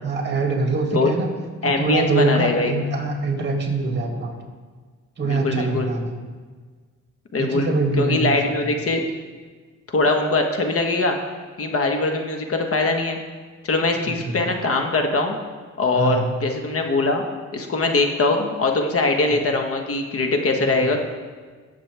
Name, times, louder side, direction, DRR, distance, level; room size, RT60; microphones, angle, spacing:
voice 1, 0.0-1.3 1.6-4.4 5.2-6.1 7.4-8.3 14.3-14.5 15.9-16.3 20.6-20.9, right 3 dB, 35° right, 1 dB, 2.5 m, -24 dB
voice 2, 1.6-2.7 5.2-5.9 7.3-9.0 9.9-11.2 11.6-13.2 13.6-15.4 15.8-17.2 17.5-21.0, left 3 dB, 50° left, 3 dB, 1.5 m, -22 dB
18.0 x 7.4 x 3.5 m, 1.5 s
cardioid pair, 90°, 30 cm